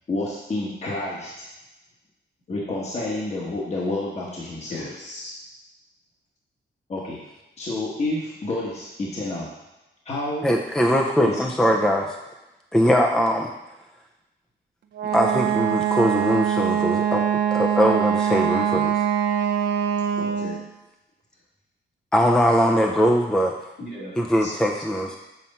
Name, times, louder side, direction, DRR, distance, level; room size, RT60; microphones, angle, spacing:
voice 1, 0.1-1.5 2.5-4.8 6.9-7.2 7.6-9.5 10.0-10.5 11.2-11.4, left 2 dB, 35° left, -4 dB, 1.2 m, -29 dB
voice 2, 4.7-5.4 20.0-20.6 23.8-24.5, left 1 dB, 65° left, -6 dB, 3.0 m, -37 dB
voice 3, 10.4-12.1 12.7-13.5 15.1-17.2 17.5-18.9 22.1-23.5 24.2-25.2, equal, 5° left, 1 dB, 0.4 m, -21 dB
Wind instrument woodwind instrument, 14.9-20.6, right 9 dB, 70° right, 0.6 m, -23 dB
7.6 x 4.4 x 5.4 m, 0.98 s
wide cardioid pair, 180°, 19 cm